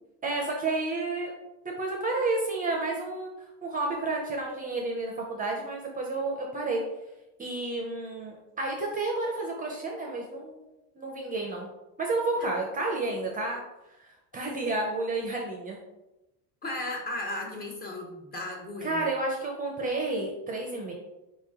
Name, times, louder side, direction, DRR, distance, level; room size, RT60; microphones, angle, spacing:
voice 1, 0.2-1.3 1.6-3.3 3.6-6.8 7.4-10.6 11.0-11.7 12.0-13.6 14.0-15.8 18.8-20.9, right 2 dB, 25° right, 0 dB, 0.6 m, -31 dB
voice 2, 16.6-19.1, left 2 dB, 25° left, -1 dB, 1.0 m, -35 dB
4.4 x 3.0 x 3.6 m, 0.96 s
cardioid pair, 150°, 37 cm